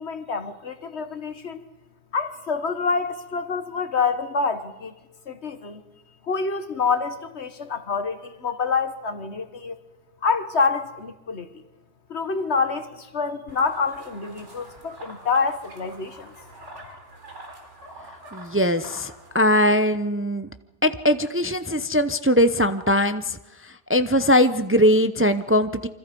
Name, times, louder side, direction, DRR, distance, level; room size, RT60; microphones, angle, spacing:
voice 1, 0.0-1.6 2.1-5.0 5.3-5.8 6.3-9.8 10.2-11.5 12.1-16.3, left 4 dB, 70° left, 9 dB, 1.8 m, -27 dB
sound 1, 13.5-19.5, right 1 dB, 90° right, 4.3 m, -45 dB
voice 2, 18.3-20.5 20.8-23.4 23.6-25.9, equal, 15° right, 10 dB, 0.6 m, -21 dB
27.5 x 25.5 x 5.4 m, 1.0 s
omnidirectional pair, 1.2 m